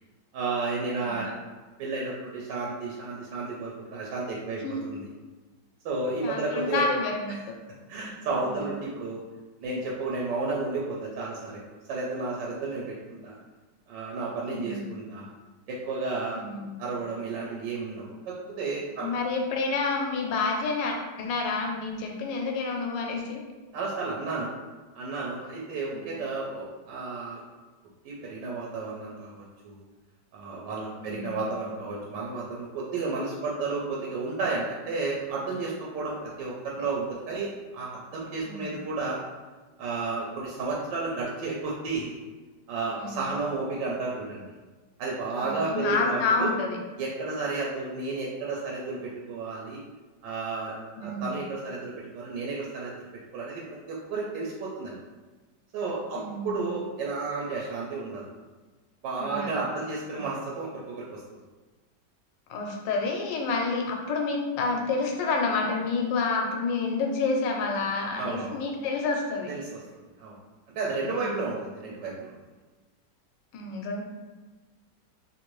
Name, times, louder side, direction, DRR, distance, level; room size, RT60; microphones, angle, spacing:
voice 1, 0.3-1.3 1.8-4.6 4.9-5.1 5.8-6.9 7.3-7.4 7.9-9.2 9.6-13.4 13.9-15.3 15.7-16.4 16.8-19.1 23.7-24.5 24.9-27.4 28.0-29.8 30.3-39.2 39.8-42.1 42.7-44.4 45.0-46.5 47.0-49.8 50.2-53.1 53.3-53.6 53.9-55.0 55.7-58.3 59.0-61.2 68.2-68.6 69.5-69.8 70.2-70.4 70.7-72.3, right 3 dB, 90° right, -4 dB, 1.3 m, -32 dB
voice 2, 1.0-1.3 4.6-4.8 6.2-7.5 8.3-8.7 14.5-14.9 16.3-16.8 19.0-23.4 25.9-26.1 31.0-31.4 38.4-38.7 43.0-43.3 45.4-46.8 51.0-51.3 56.1-56.7 59.2-59.6 60.1-60.2 62.5-69.5 71.0-71.5 73.5-74.0, left 3 dB, 90° left, 1 dB, 1.3 m, -29 dB
3.1 x 2.5 x 3.0 m, 1.3 s
omnidirectional pair, 1.9 m